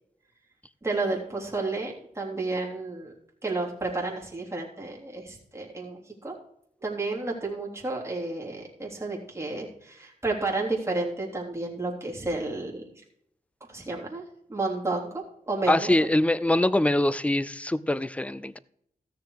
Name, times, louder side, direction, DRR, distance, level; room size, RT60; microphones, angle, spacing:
voice 1, 0.8-3.1 3.4-6.3 6.8-12.8 13.7-14.2 14.5-16.0, right 2 dB, 20° right, 3.4 m, -31 dB
voice 2, 15.7-18.6, left 1 dB, 10° left, 0.5 m, -23 dB
14.5 x 6.6 x 4.8 m
wide cardioid pair, 95°, 15 cm